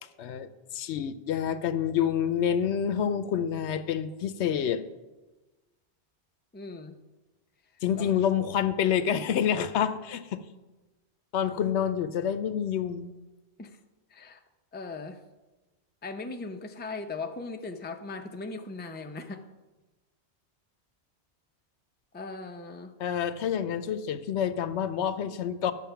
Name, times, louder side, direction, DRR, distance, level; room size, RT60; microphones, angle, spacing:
voice 1, 0.2-4.8 7.8-10.4 11.3-13.1 23.0-25.7, left 8 dB, 80° left, 13 dB, 0.9 m, -28 dB
voice 2, 6.5-7.0 7.9-8.1 13.6-13.8 14.1-14.4 14.7-15.2 16.0-19.4 22.1-22.9, left 3 dB, 15° left, 5 dB, 0.4 m, -38 dB
11.0 x 6.7 x 5.7 m, 1.2 s
omnidirectional pair, 1.1 m